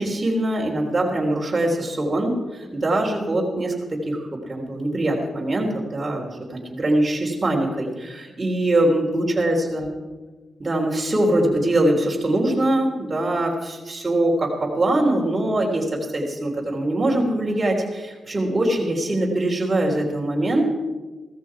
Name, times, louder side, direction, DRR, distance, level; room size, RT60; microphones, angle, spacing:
voice 1, 0.0-9.9 10.6-20.7, right 1 dB, 30° right, -1 dB, 3.5 m, -23 dB
16.0 x 14.0 x 4.8 m, 1.3 s
cardioid pair, 60°, 0 cm